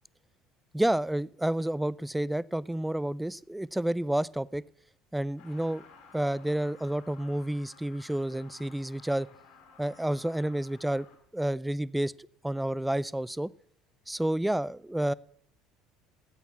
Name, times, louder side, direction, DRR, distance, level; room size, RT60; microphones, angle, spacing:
voice 1, 0.7-4.6 5.1-5.9 6.1-9.3 9.8-11.1 11.3-12.1 12.4-13.5 14.1-15.1, right 1 dB, 5° right, 21 dB, 0.5 m, -30 dB
Truck, 5.4-11.2, left 5 dB, 75° left, 4.2 m, -55 dB
13.5 x 8.2 x 7.0 m, 0.63 s
hypercardioid pair, 75°, 0 cm